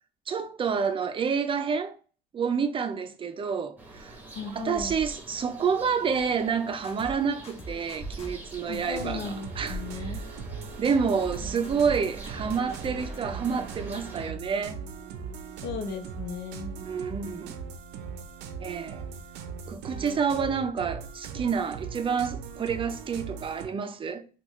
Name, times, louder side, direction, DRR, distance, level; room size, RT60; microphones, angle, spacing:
voice 1, 0.3-2.0 2.3-4.2 4.5-9.8 10.8-14.8 16.9-17.5 18.6-19.0 19.7-24.3, right 6 dB, 30° right, 0.5 m, -28 dB
sound 1, 3.8-14.3, right 2 dB, 10° right, 0.9 m, -43 dB
voice 2, 4.3-5.0 8.7-10.3 15.6-16.8, left 5 dB, 75° left, 0.8 m, -36 dB
sound 2, 6.8-7.1 7.4-8.3 11.2-11.4 11.6-12.0 12.2-13.2, equal, 35° left, 0.9 m, -41 dB
sound 3, 8.7-23.7, right 6 dB, 90° right, 0.6 m, -39 dB
3.7 x 2.3 x 3.0 m
cardioid pair, 110°, 17 cm